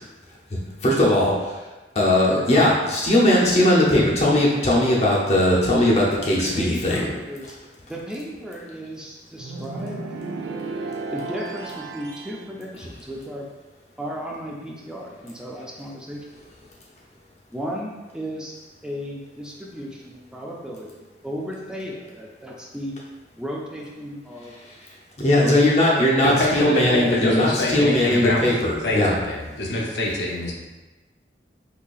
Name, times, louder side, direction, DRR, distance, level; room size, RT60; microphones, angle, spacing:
voice 1, 0.8-1.3 2.0-7.0 25.2-29.1, left 1 dB, 40° left, -5 dB, 0.6 m, -19 dB
voice 2, 6.0-7.6 7.9-10.4 11.1-13.5 14.0-16.3 17.5-18.6 18.8-22.9 23.4-24.5 25.4-26.2, equal, 5° right, -3 dB, 0.4 m, -35 dB
sound 1, 9.4-12.4, right 3 dB, 70° right, 0.4 m, -33 dB
voice 3, 26.2-28.4 28.8-30.5, left 1 dB, 80° left, -2 dB, 0.7 m, -25 dB
4.0 x 2.8 x 2.3 m, 1.2 s
head